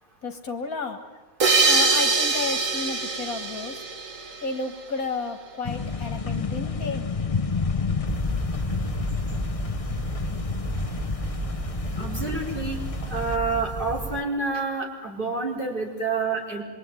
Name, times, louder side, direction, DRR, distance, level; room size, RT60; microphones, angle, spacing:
voice 1, 0.2-1.0 1.7-3.8 4.4-7.1, left 4 dB, 75° left, 5 dB, 2.2 m, -32 dB
sound 1, 1.4-4.7, right 4 dB, 65° right, 2.2 m, -23 dB
sound 2, 5.6-13.4, left 5 dB, 30° left, 0.8 m, -30 dB
sound 3, 8.1-14.2, right 2 dB, 15° right, 0.8 m, -33 dB
voice 2, 12.0-12.8 13.1-16.6, right 4 dB, 35° right, -1 dB, 5.1 m, -28 dB
26.5 x 23.5 x 9.3 m, 1.3 s
omnidirectional pair, 1.5 m